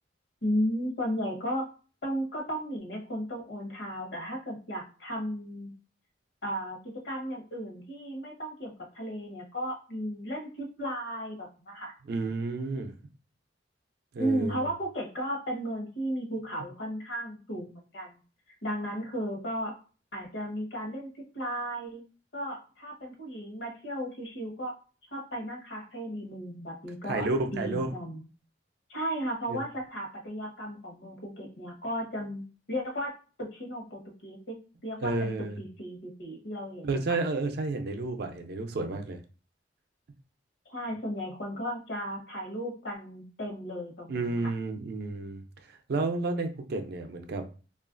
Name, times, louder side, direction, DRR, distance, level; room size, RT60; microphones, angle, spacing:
voice 1, 0.4-1.7 2.0-5.7 6.4-6.8 7.0-11.9 14.2-18.2 18.6-19.7 20.1-22.0 22.3-24.7 25.1-28.2 28.9-33.1 33.4-34.6 34.8-36.8 40.7-44.5, equal, 70° left, 0.9 m, -35 dB
voice 2, 12.1-12.9 14.1-14.7 27.1-27.9 29.5-29.6 35.0-35.6 36.8-39.2 44.1-47.5, right 3 dB, 60° right, 0.4 m, -31 dB
3.0 x 2.4 x 2.4 m
head